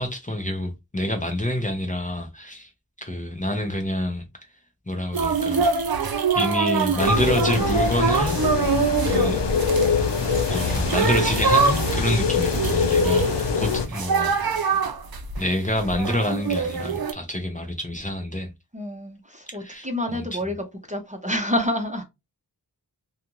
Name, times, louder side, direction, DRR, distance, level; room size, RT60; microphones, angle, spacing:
voice 1, 0.0-2.7 3.0-4.3 4.9-5.6 6.3-8.4 9.1-9.5 10.5-14.4 15.4-18.5 19.6-20.4, left 1 dB, 20° left, 0.6 m, -27 dB
sound 1, 5.1-17.1, right 5 dB, 60° right, 0.6 m, -25 dB
sound 2, 7.0-13.8, left 5 dB, 90° left, 0.6 m, -24 dB
voice 2, 18.7-20.6 20.9-22.0, left 1 dB, 20° right, 0.7 m, -28 dB
2.5 x 2.3 x 2.9 m
wide cardioid pair, 45°, 41 cm